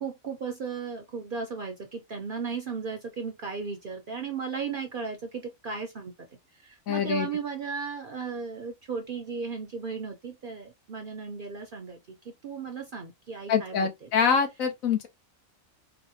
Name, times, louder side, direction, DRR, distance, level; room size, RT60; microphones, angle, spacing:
voice 1, 0.0-6.1 6.6-12.2 12.4-14.4, right 5 dB, 55° right, 0.6 m, -35 dB
voice 2, 6.9-7.3 13.5-15.1, left 6 dB, 75° left, 1.2 m, -25 dB
3.9 x 2.1 x 2.7 m
omnidirectional pair, 1.5 m